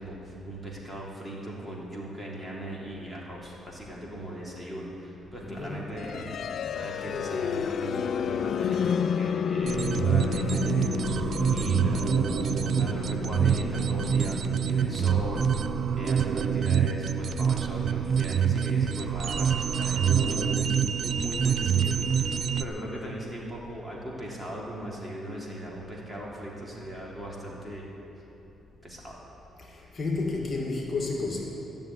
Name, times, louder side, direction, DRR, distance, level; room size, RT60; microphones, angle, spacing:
voice 1, 0.0-12.0 12.4-14.4 14.7-15.7 16.0-27.9 28.8-29.2, right 1 dB, 15° right, -4 dB, 3.3 m, -39 dB
voice 2, 5.4-5.9 29.7-31.4, left 3 dB, 40° left, -1 dB, 2.3 m, -31 dB
sound 1, 5.9-17.8, left 7 dB, 60° left, 0.4 m, -32 dB
sound 2, 9.6-22.6, right 7 dB, 55° right, 0.5 m, -26 dB
14.5 x 7.1 x 9.2 m, 3.0 s
cardioid pair, 90°, 0 cm